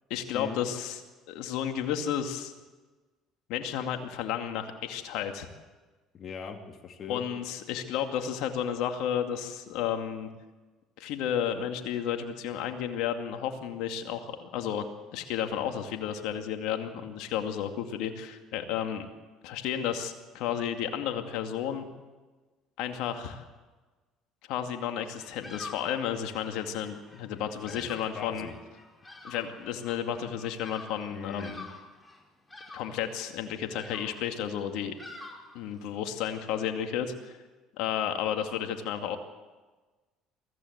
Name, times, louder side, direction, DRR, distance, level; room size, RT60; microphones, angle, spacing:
voice 1, 0.1-1.0 1.3-2.5 3.5-5.5 7.1-10.3 11.0-14.9 15.1-19.1 19.4-21.8 22.8-23.4 24.5-28.5 29.2-31.6 32.7-34.9 35.5-37.3 37.8-39.2, left 9 dB, 75° left, 5 dB, 2.3 m, -32 dB
voice 2, 6.1-7.2 27.6-28.5 31.1-31.5, left 6 dB, 45° left, 4 dB, 2.5 m, -40 dB
Bird vocalization bird call bird song, 25.1-36.1, left 2 dB, 15° left, 5.1 m, -48 dB
23.5 x 15.0 x 8.1 m, 1.3 s
supercardioid pair, 85°, 0 cm